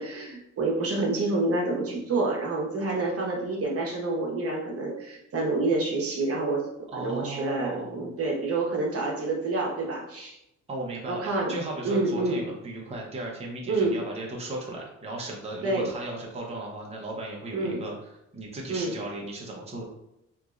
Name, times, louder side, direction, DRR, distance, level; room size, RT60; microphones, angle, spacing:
voice 1, 0.0-6.6 7.0-10.4 11.1-11.5 11.8-12.4 13.7-14.0 15.6-15.9 17.5-17.8 18.7-18.9, right 2 dB, 50° right, -2 dB, 1.0 m, -28 dB
voice 2, 6.9-8.1 10.7-19.8, right 2 dB, 20° right, -2 dB, 0.8 m, -36 dB
3.5 x 3.0 x 2.5 m, 0.84 s
cardioid pair, 90°, 30 cm